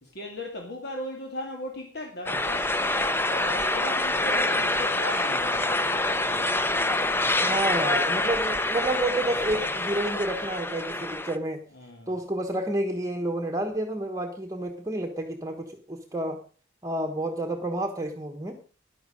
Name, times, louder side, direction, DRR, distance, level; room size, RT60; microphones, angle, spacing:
voice 1, 0.0-2.7 3.2-6.6 11.7-12.1, left 1 dB, 60° left, 1 dB, 2.4 m, -37 dB
sound 1, 2.3-11.4, left 2 dB, 10° left, 0.7 m, -26 dB
voice 2, 7.4-11.6 12.1-16.4 16.8-18.6, right 1 dB, 15° right, 5 dB, 1.2 m, -30 dB
14.0 x 11.0 x 5.2 m, 0.38 s
head